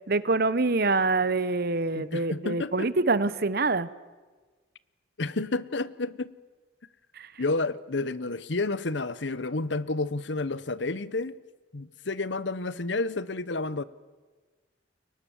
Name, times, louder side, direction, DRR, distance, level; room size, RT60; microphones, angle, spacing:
voice 1, 0.1-3.9 7.2-7.3, right 3 dB, 55° right, 16 dB, 1.0 m, -25 dB
voice 2, 1.9-2.9 5.2-6.3 7.4-11.4 11.7-13.8, left 3 dB, 70° left, 17 dB, 1.0 m, -30 dB
29.5 x 23.5 x 7.2 m, 1.3 s
head